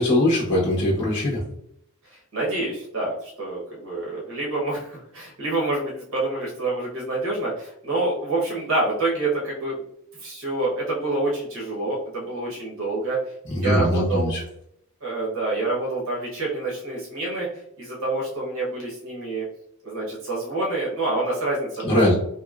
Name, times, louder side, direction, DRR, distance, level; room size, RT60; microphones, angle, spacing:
voice 1, 0.0-1.4 13.5-14.4 21.8-22.1, left 1 dB, 55° left, -4 dB, 1.0 m, -21 dB
voice 2, 2.0-9.8 10.2-13.2 13.5-14.3 15.0-17.5 17.8-19.4 19.8-22.1, right 2 dB, 65° right, -4 dB, 1.0 m, -27 dB
3.0 x 2.7 x 2.4 m, 0.73 s
head